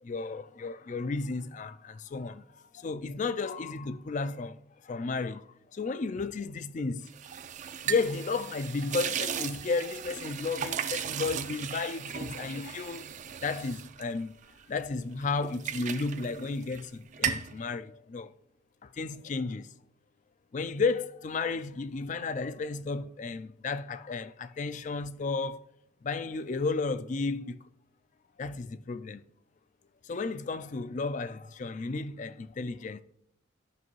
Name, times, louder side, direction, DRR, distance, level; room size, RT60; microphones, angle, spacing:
voice 1, 0.0-7.1 7.9-13.1 13.4-14.3 14.7-18.3 18.8-19.7 20.5-25.6 26.0-27.6 28.4-29.2 30.0-33.0, left 4 dB, 35° left, 0.3 m, -33 dB
sound 1, 7.1-14.8 15.2-16.9 17.1-17.5, right 8 dB, 35° right, 0.4 m, -36 dB
15.0 x 6.0 x 3.1 m
head